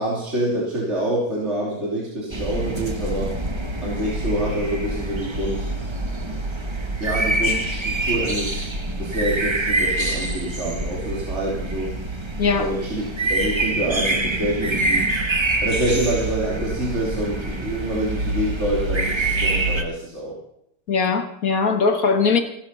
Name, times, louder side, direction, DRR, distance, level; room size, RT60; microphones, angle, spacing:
voice 1, 0.0-3.3 3.8-5.7 7.0-8.7 9.0-11.9 12.6-15.1 15.6-20.4, right 1 dB, 35° right, 3.4 m, -26 dB
sound 1, 2.3-19.8, right 2 dB, 20° right, 1.0 m, -25 dB
voice 2, 12.4-12.7 20.9-22.4, left 5 dB, 50° left, 1.8 m, -20 dB
16.0 x 12.0 x 5.7 m
omnidirectional pair, 2.0 m